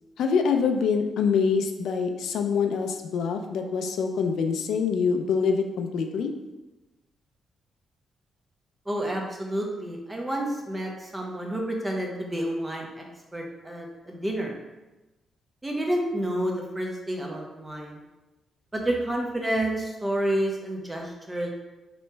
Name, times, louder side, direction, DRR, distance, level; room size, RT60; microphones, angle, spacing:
voice 1, 0.2-6.3, left 5 dB, 80° left, 5 dB, 0.4 m, -25 dB
voice 2, 8.9-13.0 13.3-14.5 15.6-18.0 18.7-21.5, right 1 dB, 15° right, 0 dB, 0.8 m, -29 dB
3.2 x 3.0 x 4.4 m, 1.1 s
cardioid pair, 110°, 0 cm